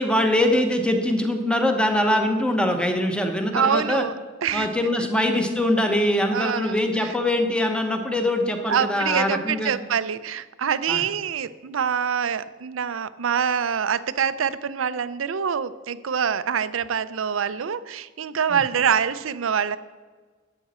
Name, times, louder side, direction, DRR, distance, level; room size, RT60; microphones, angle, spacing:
voice 1, 0.0-4.0 4.5-9.7 10.9-11.0 18.5-18.6, left 1 dB, 5° left, 4 dB, 1.0 m, -23 dB
voice 2, 3.5-4.7 6.3-6.8 7.0-7.1 8.7-19.8, right 7 dB, 90° right, 15 dB, 0.5 m, -25 dB
11.5 x 8.5 x 4.3 m, 1.4 s
head